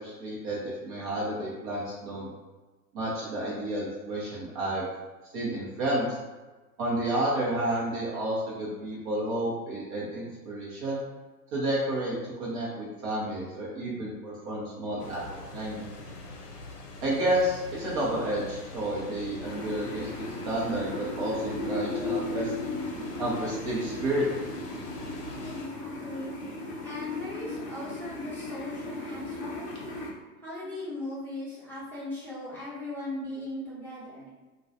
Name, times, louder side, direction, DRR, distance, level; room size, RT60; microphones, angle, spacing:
voice 1, 0.0-2.3 2.9-4.9 5.3-6.1 6.8-11.0 11.5-15.2 15.5-15.9 17.0-22.5 23.2-24.3, right 1 dB, 35° right, -5 dB, 0.6 m, -31 dB
sound 1, 15.0-25.7, left 2 dB, 85° left, 0.6 m, -44 dB
sound 2, 19.4-30.1, left 2 dB, 40° left, 0.5 m, -36 dB
voice 2, 25.4-26.4 26.8-29.6 30.4-34.3, left 2 dB, 5° left, -10 dB, 0.8 m, -38 dB
2.3 x 2.2 x 2.6 m, 1.2 s
figure-of-eight pair, 95°, 46 cm